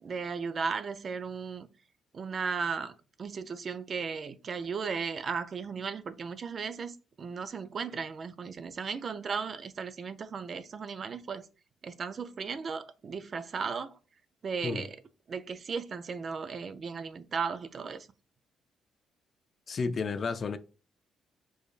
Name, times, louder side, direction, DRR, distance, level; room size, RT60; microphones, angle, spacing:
voice 1, 0.0-1.7 2.1-11.5 11.8-13.9 14.4-15.0 15.3-18.1, right 5 dB, 45° right, 0.4 m, -36 dB
voice 2, 19.7-20.6, left 4 dB, 45° left, 0.4 m, -31 dB
4.7 x 2.6 x 2.4 m
cardioid pair, 90°, 0 cm